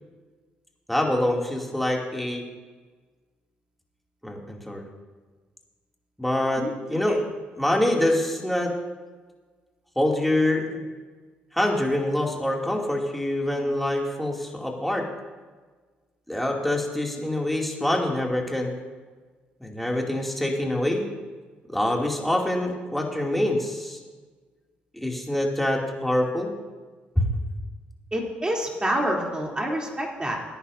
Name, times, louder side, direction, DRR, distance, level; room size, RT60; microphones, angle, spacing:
voice 1, 0.9-2.4 4.2-4.8 6.2-7.2 7.6-8.7 10.0-10.8 11.5-15.1 16.3-18.7 19.6-21.0 21.7-24.0 24.9-26.5 27.2-27.3, left 1 dB, 5° left, 0 dB, 2.6 m, -25 dB
voice 2, 28.1-30.4, right 1 dB, 20° right, -1 dB, 3.2 m, -27 dB
19.5 x 10.0 x 2.7 m, 1.4 s
hypercardioid pair, 55°, 5 cm